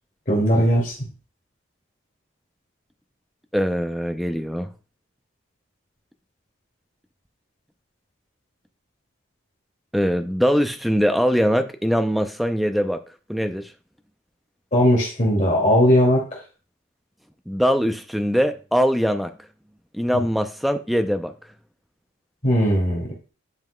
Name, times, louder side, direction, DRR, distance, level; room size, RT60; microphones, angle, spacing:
voice 1, 0.3-0.9 14.7-16.2 22.4-23.1, equal, 40° left, 2.4 m, -18 dB
voice 2, 3.5-4.7 9.9-13.0 13.3-13.7 17.5-19.3 19.9-21.3, equal, ahead, 0.5 m, -22 dB
10.5 x 5.6 x 2.2 m
head